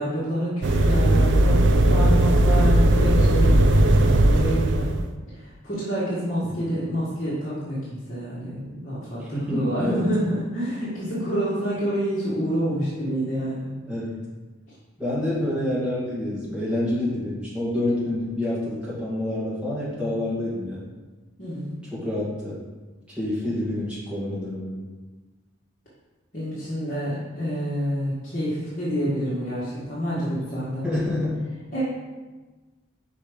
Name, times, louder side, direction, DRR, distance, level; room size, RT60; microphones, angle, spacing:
voice 1, 0.0-5.0 5.3-13.7 14.7-14.8 21.4-21.7 26.3-30.8 31.7-31.8, equal, 40° left, -10 dB, 1.6 m, -28 dB
sound 1, 0.6-5.1, right 1 dB, 60° right, 0.5 m, -18 dB
voice 2, 9.3-10.0 13.9-14.2 15.0-20.8 21.9-22.6 23.1-24.7 30.8-31.4, left 1 dB, 5° right, -9 dB, 2.1 m, -27 dB
5.5 x 4.5 x 5.1 m, 1.3 s
head